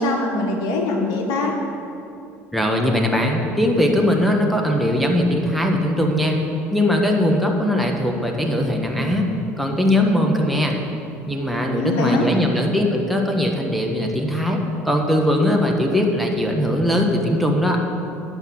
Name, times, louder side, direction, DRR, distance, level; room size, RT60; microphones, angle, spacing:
voice 1, 0.0-1.6 11.7-12.3, left 2 dB, 70° left, 2 dB, 1.4 m, -22 dB
voice 2, 2.5-6.4 6.7-9.3 9.6-10.8 11.3-17.8, left 1 dB, ahead, 1 dB, 1.5 m, -20 dB
11.0 x 5.6 x 6.2 m, 2.6 s
hypercardioid pair, 65°, 7 cm